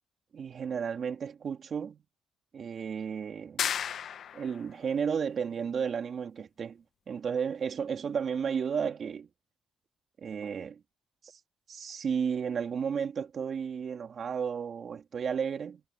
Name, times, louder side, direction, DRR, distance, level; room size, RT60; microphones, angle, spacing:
voice 1, 0.3-2.0 2.5-3.7 4.3-9.3 10.2-10.8 11.2-11.3 11.7-15.8, right 7 dB, 50° right, 3.2 m, -33 dB
sound 1, 3.6-4.7, left 8 dB, 65° left, 1.2 m, -33 dB
cardioid pair, 90°, 0 cm